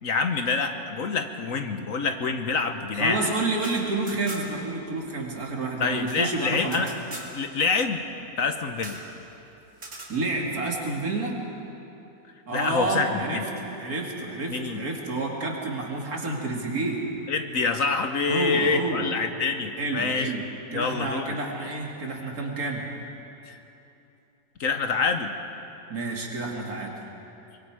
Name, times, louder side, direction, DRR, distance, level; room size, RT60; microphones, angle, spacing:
voice 1, 0.0-3.3 5.8-6.9 7.3-8.0 8.4-9.0 12.5-13.5 14.5-14.8 17.3-20.3 20.7-21.4 23.5-23.6 24.6-25.3, left 4 dB, 60° left, 6 dB, 1.4 m, -26 dB
voice 2, 3.0-6.8 10.1-11.4 12.5-17.0 18.3-19.1 19.8-20.4 20.7-22.8 25.9-26.9, right 2 dB, 65° right, -1 dB, 2.9 m, -29 dB
sound 1, 3.5-4.7 5.0-5.1 5.3-7.3 8.8-9.1 9.7-10.2, right 2 dB, 50° right, 3.1 m, -41 dB
24.0 x 22.5 x 4.9 m, 2.9 s
omnidirectional pair, 1.7 m